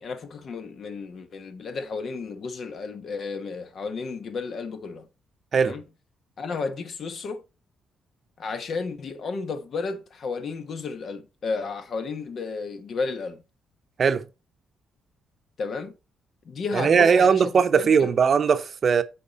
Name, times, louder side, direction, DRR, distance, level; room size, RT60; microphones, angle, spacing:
voice 1, 0.0-5.1 5.6-5.8 6.4-7.4 8.4-13.4 15.6-16.0 16.4-18.1, left 4 dB, 55° left, 1.2 m, -33 dB
voice 2, 16.7-19.0, right 6 dB, 45° right, 0.7 m, -19 dB
8.4 x 4.4 x 4.1 m
cardioid pair, 90°, 0 cm